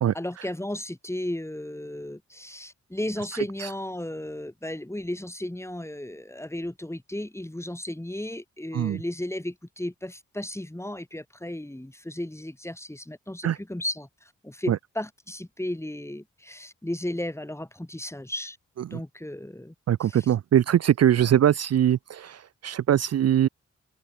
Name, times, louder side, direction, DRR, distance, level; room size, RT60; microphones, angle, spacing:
voice 1, 0.1-18.6 18.9-19.7 20.0-20.3 21.2-21.3, left 1 dB, 10° left, 2.5 m, -34 dB
voice 2, 19.9-23.5, right 10 dB, 60° right, 0.5 m, -22 dB
cardioid pair, 50°, 29 cm